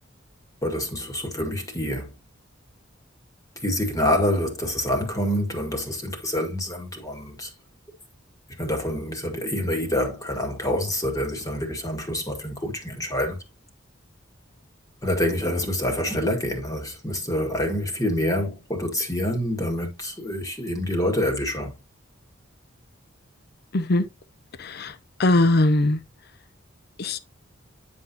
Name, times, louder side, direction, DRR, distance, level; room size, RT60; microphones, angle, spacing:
voice 1, 0.6-2.1 3.6-7.5 8.6-13.4 15.0-21.7, left 1 dB, 20° left, 1.8 m, -26 dB
voice 2, 23.7-24.0 24.6-24.9 25.2-26.0 27.0-27.2, left 2 dB, 55° left, 0.7 m, -20 dB
9.8 x 5.4 x 2.8 m
head